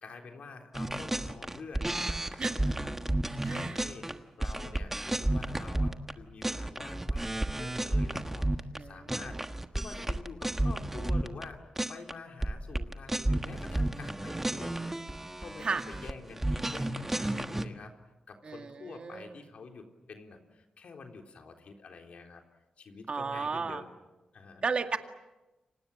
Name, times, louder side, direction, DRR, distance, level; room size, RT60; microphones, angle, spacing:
voice 1, 0.0-4.1 4.4-17.9 18.3-22.4 22.8-23.9 24.3-24.6, left 4 dB, 70° left, 3 dB, 3.8 m, -48 dB
sound 1, 0.8-6.1 6.4-8.8 9.1-11.5 11.8-12.1 12.4-17.7, right 1 dB, 15° right, 1.4 m, -32 dB
voice 2, 3.4-3.8 8.8-9.4 15.6-15.8 18.4-19.4 23.1-23.8 24.6-25.0, right 4 dB, 50° right, 6 dB, 2.1 m, -34 dB
29.5 x 25.0 x 7.4 m, 1.0 s
wide cardioid pair, 100°, 2 cm